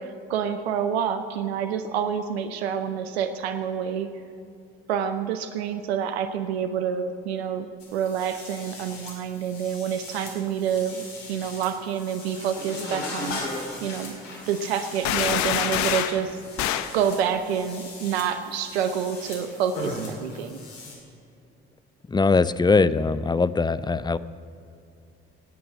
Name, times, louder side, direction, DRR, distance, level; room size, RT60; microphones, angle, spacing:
voice 1, 0.0-4.1 4.9-13.4 13.8-14.1 14.5-16.4 16.9-20.6, right 8 dB, 85° right, 8 dB, 0.7 m, -28 dB
sound 1, 7.8-20.9, left 2 dB, 80° left, 2.6 m, -38 dB
sound 2, 15.0-16.2 16.6-16.9, left 11 dB, 65° left, 0.8 m, -25 dB
voice 2, 22.1-24.2, left 4 dB, 15° left, 15 dB, 0.5 m, -21 dB
17.5 x 8.6 x 7.1 m, 2.5 s
hypercardioid pair, 50°, 31 cm